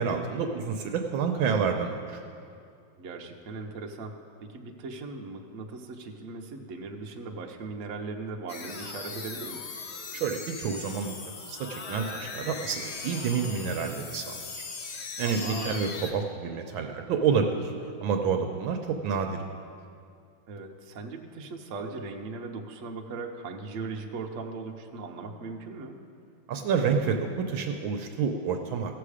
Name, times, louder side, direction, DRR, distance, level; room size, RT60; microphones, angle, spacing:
voice 1, 0.0-2.2 10.1-14.7 14.9-17.7 18.0-19.4 26.5-29.0, right 6 dB, 75° right, 4 dB, 1.4 m, -29 dB
voice 2, 3.0-4.1 4.4-9.6 15.2-15.9 20.5-26.0, right 3 dB, 55° right, 2 dB, 0.9 m, -38 dB
sound 1, 8.5-16.1, left 4 dB, 85° left, 0.5 m, -39 dB
16.0 x 6.8 x 4.9 m, 2.4 s
omnidirectional pair, 2.3 m